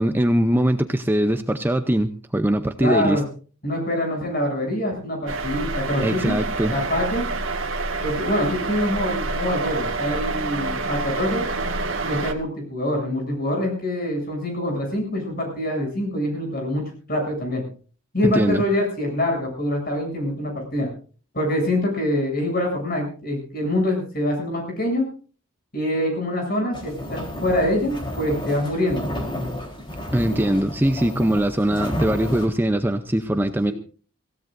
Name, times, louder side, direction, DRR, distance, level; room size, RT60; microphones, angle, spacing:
voice 1, 0.0-3.2 6.0-6.7 18.2-18.6 30.1-33.7, right 1 dB, 10° right, 7 dB, 0.6 m, -21 dB
voice 2, 2.8-3.2 3.6-6.4 6.7-7.2 8.0-11.4 12.0-17.6 18.1-20.9 21.3-25.0 25.7-29.1 30.3-30.4 33.7-33.8, left 1 dB, 45° left, 2 dB, 7.7 m, -25 dB
sound 1, 5.3-12.3, right 3 dB, 70° right, 1.8 m, -27 dB
sound 2, 26.7-32.5, left 1 dB, 25° left, 3.8 m, -32 dB
25.0 x 16.5 x 2.6 m, 0.39 s
head